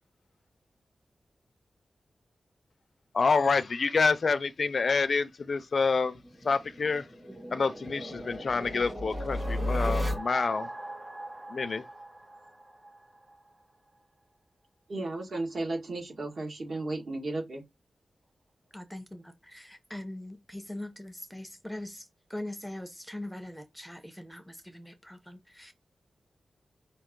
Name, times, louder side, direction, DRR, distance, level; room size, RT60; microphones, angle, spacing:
voice 1, 3.1-6.2 6.4-7.1 7.5-10.7 11.5-11.8, left 4 dB, 55° left, 0.4 m, -27 dB
sound 1, 6.1-13.0, left 1 dB, 20° right, 1.6 m, -35 dB
voice 2, 14.9-17.6, right 2 dB, 60° right, 1.6 m, -34 dB
voice 3, 18.7-25.7, left 1 dB, ahead, 0.7 m, -42 dB
5.3 x 2.8 x 3.6 m
wide cardioid pair, 125°, 0 cm